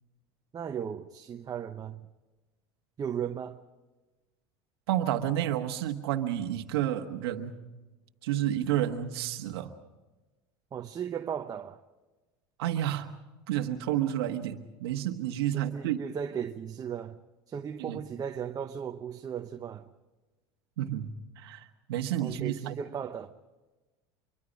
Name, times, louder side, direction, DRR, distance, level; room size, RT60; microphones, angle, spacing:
voice 1, 0.5-2.1 3.0-3.6 10.7-11.8 15.5-17.2 17.5-19.9 22.2-23.3, right 8 dB, 30° right, 0.9 m, -36 dB
voice 2, 4.9-7.6 8.2-9.7 12.6-13.2 13.5-16.0 17.8-18.0 20.8-22.8, right 11 dB, 85° right, 1.3 m, -30 dB
25.0 x 24.0 x 5.3 m
supercardioid pair, 105°, 13 cm